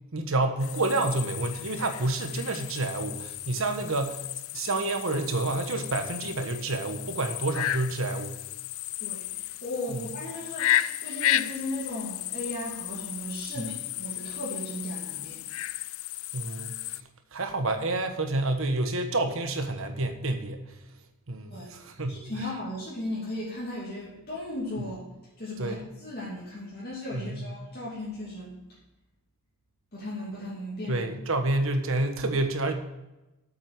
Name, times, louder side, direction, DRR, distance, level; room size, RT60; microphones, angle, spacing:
voice 1, 0.1-4.2 4.5-8.4 13.6-13.7 16.3-16.7 17.3-20.6 21.3-22.2 25.6-25.8 27.1-27.5 30.9-32.7, right 2 dB, 60° right, 6 dB, 1.4 m, -28 dB
sound 1, 0.6-17.0, left 13 dB, 65° left, 0.4 m, -34 dB
voice 2, 9.0-15.4 21.5-21.7 22.1-25.0 25.4-28.5 29.9-31.0, left 1 dB, 45° left, -7 dB, 2.9 m, -36 dB
8.5 x 7.6 x 6.5 m, 0.99 s
head